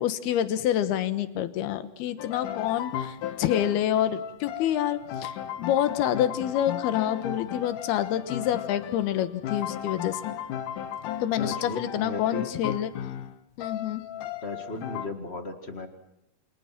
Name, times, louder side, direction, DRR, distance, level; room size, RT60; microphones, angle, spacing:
voice 1, 0.0-10.4 11.2-12.9 13.6-14.1, left 11 dB, 85° left, 11 dB, 3.2 m, -27 dB
sound 1, 2.2-15.1, left 10 dB, 65° left, 2.5 m, -35 dB
voice 2, 11.4-12.5 14.4-15.9, left 3 dB, 30° left, 6 dB, 1.2 m, -36 dB
29.0 x 26.5 x 6.0 m, 0.78 s
omnidirectional pair, 4.4 m